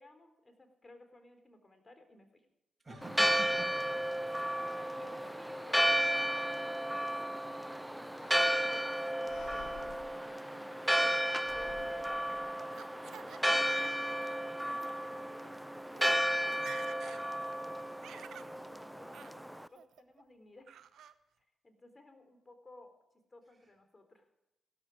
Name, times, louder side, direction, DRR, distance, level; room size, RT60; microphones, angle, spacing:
voice 1, 0.0-2.5 2.9-3.4 4.5-7.5 7.9-12.3 12.6-20.8 21.4-23.0 23.3-24.3, left 2 dB, 30° left, 7 dB, 4.0 m, -57 dB
voice 2, 2.8-4.6, right 2 dB, 20° right, -6 dB, 7.5 m, -49 dB
Church bell, 3.0-19.7, equal, 5° right, 0.6 m, -33 dB
sound 1, 8.2-8.8 9.2-11.0 11.4-12.9, left 8 dB, 75° left, 0.9 m, -55 dB
Laughter, 11.8-13.4 13.7-14.4 14.7-14.9 15.6-15.7 15.9-16.2 16.5-17.2 17.6-18.5 19.1-19.3 19.7-20.2 20.7-21.1, right 9 dB, 70° right, 0.8 m, -51 dB
16.5 x 13.5 x 5.1 m, 0.95 s
supercardioid pair, 50°, 0 cm